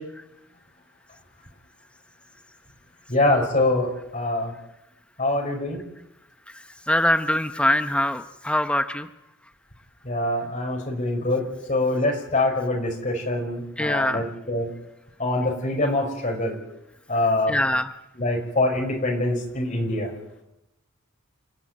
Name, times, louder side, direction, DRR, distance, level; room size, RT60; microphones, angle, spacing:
voice 1, 3.1-4.5 5.2-5.8 10.0-14.7 15.2-16.5 17.1-17.6 18.2-20.1, left 2 dB, 35° left, 1 dB, 5.1 m, -24 dB
voice 2, 6.5-9.1 13.8-14.2 17.5-17.9, left 1 dB, 5° left, 9 dB, 0.8 m, -23 dB
29.5 x 11.5 x 9.4 m, 0.87 s
head